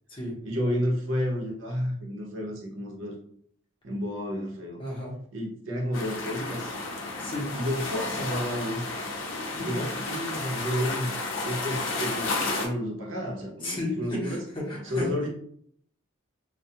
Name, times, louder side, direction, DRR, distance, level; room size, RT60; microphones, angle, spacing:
voice 1, 0.4-3.2 3.8-4.8 5.3-6.8 7.5-8.8 9.5-11.1 11.4-14.4 14.8-15.3, equal, 80° right, -1 dB, 0.7 m, -31 dB
voice 2, 4.8-5.2 7.2-7.5 9.5-9.7 13.6-15.1, left 1 dB, 25° left, -4 dB, 0.8 m, -33 dB
sound 1, 5.9-12.7, left 3 dB, 85° left, 0.5 m, -32 dB
2.2 x 2.1 x 2.7 m, 0.63 s
head